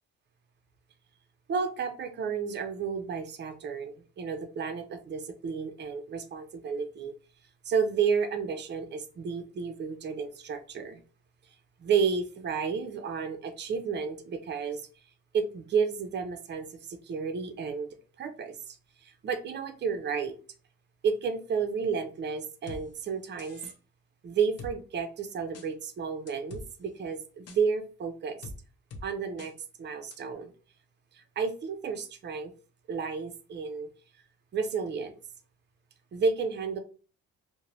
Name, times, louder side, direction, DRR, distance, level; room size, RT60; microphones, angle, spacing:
voice 1, 1.5-7.1 7.7-11.0 11.8-14.9 15.3-17.9 18.2-18.8 19.0-20.3 21.0-23.7 24.2-28.5 29.0-29.5 29.8-30.5 31.1-32.5 32.9-33.9 34.5-35.1 36.1-36.8, right 6 dB, 35° right, 7 dB, 0.5 m, -31 dB
sound 1, 22.7-22.8 23.4-23.7 24.6-24.7 25.5-25.7 26.3-26.7 27.5-27.6 28.4-28.6 28.9-29.0 29.4-29.5 30.1-30.2, left 2 dB, 55° left, 0.7 m, -42 dB
2.4 x 2.1 x 3.0 m, 0.38 s
cardioid pair, 90°, 30 cm